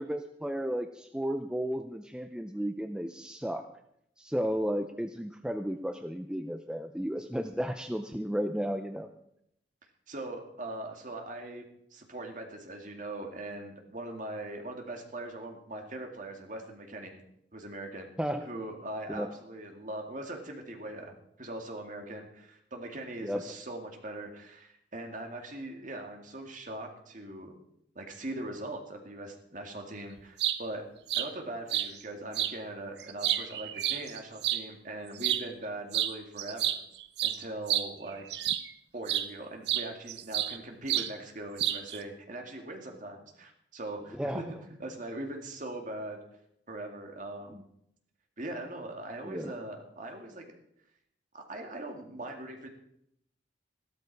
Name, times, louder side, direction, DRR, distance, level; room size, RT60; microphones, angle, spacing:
voice 1, 0.0-3.7 4.2-9.1 18.2-18.5 19.1-19.3 23.2-23.5 44.1-44.5 49.2-49.6, equal, 5° right, 6 dB, 0.5 m, -33 dB
voice 2, 10.1-11.6 11.9-17.2 17.5-18.1 18.4-21.1 21.4-27.5 28.0-30.8 31.1-36.8 37.2-38.3 38.9-46.2 46.7-47.7 48.4-50.6 51.3-52.7, right 1 dB, 45° right, 3 dB, 2.1 m, -41 dB
sound 1, 30.2-30.6 31.1-31.3 31.7-31.9 32.3-32.5 33.0-34.6 35.2-35.4 35.9-36.1 36.4-38.7 39.1-39.3 39.7-40.6 40.9-41.1 41.6-42.0, right 12 dB, 60° right, 0.7 m, -29 dB
14.5 x 12.5 x 4.7 m, 0.75 s
head